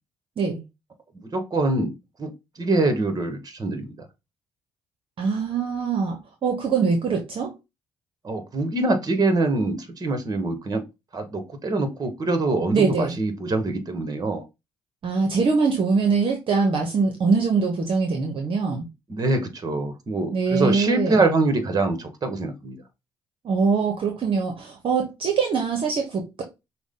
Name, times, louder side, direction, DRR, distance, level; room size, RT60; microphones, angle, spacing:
voice 1, 1.3-1.9 2.2-2.3 2.6-3.9 8.2-10.8 11.1-14.4 19.1-22.8, right 2 dB, 35° right, 1.4 m, -24 dB
voice 2, 5.2-7.5 12.7-13.2 15.0-18.9 20.3-21.2 23.4-26.4, right 5 dB, 55° right, 1.0 m, -23 dB
5.9 x 2.3 x 3.8 m
supercardioid pair, 65°, 11 cm